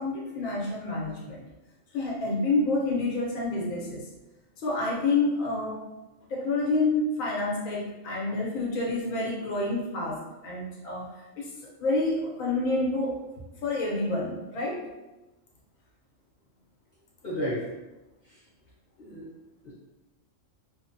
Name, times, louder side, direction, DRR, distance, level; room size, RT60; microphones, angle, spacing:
voice 1, 0.0-1.4 1.9-4.1 4.6-5.8 6.3-11.5 11.8-13.2 13.6-14.9, left 2 dB, 85° left, -2 dB, 1.1 m, -28 dB
voice 2, 17.2-17.7 18.2-18.4 19.0-19.3 19.6-19.7, equal, 45° left, -11 dB, 1.0 m, -33 dB
3.0 x 2.0 x 2.5 m, 1.0 s
omnidirectional pair, 1.4 m